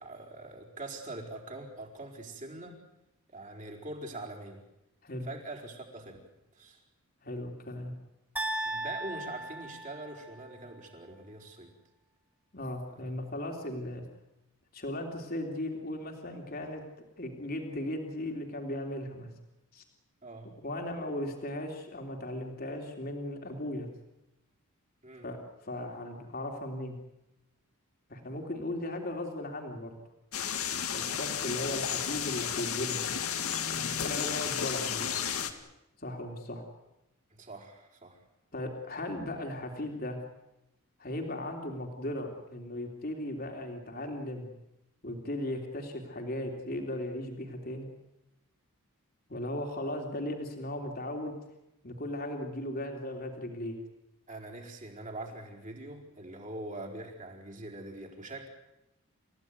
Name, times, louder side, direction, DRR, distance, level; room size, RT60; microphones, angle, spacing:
voice 1, 0.0-2.8 3.3-4.7 5.2-6.2 6.5-6.8 8.6-11.7 12.9-13.1 20.2-20.5 25.0-25.3 37.3-38.2 54.3-58.5, right 2 dB, 35° right, 0 dB, 4.7 m, -43 dB
voice 2, 7.2-7.9 12.5-14.0 14.7-16.8 17.2-19.3 19.7-19.8 20.6-23.9 25.2-25.4 25.6-27.0 28.1-29.9 30.9-33.1 33.7-35.1 36.0-36.6 38.5-40.2 41.0-44.5 45.0-47.9 49.3-51.3 51.8-53.7, left 1 dB, 40° left, 2 dB, 3.2 m, -37 dB
sound 1, 8.4-10.5, right 1 dB, 10° right, 3.6 m, -36 dB
sound 2, 30.3-35.5, left 8 dB, 75° left, 2.2 m, -33 dB
29.5 x 15.5 x 9.6 m, 0.91 s
head